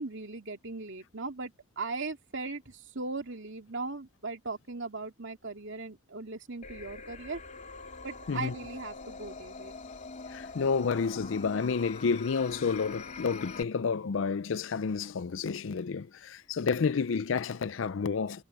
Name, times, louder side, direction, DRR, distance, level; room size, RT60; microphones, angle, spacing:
voice 1, 0.0-7.4 8.0-9.7, right 3 dB, 60° right, 2.6 m, -38 dB
sound 1, 6.6-13.6, left 4 dB, 35° left, 3.0 m, -44 dB
voice 2, 10.3-18.4, left 5 dB, 65° left, 0.5 m, -30 dB
head